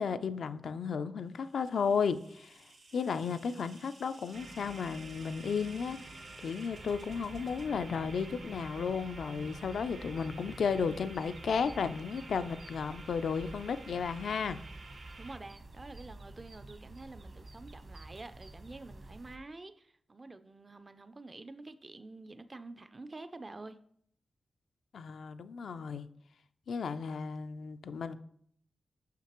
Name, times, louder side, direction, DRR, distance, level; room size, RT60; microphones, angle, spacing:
voice 1, 0.0-2.6 2.9-6.0 6.4-14.6 24.9-26.1 26.7-28.2, left 6 dB, 80° left, 0.3 m, -34 dB
sound 1, 1.3-7.7, right 2 dB, 90° right, 1.9 m, -58 dB
sound 2, 4.3-15.4, right 2 dB, 70° right, 0.8 m, -49 dB
sound 3, 6.7-19.4, right 2 dB, 55° right, 1.0 m, -50 dB
voice 2, 15.2-23.8, right 2 dB, 30° right, 0.4 m, -48 dB
6.4 x 5.8 x 3.0 m
cardioid pair, 80°, 0 cm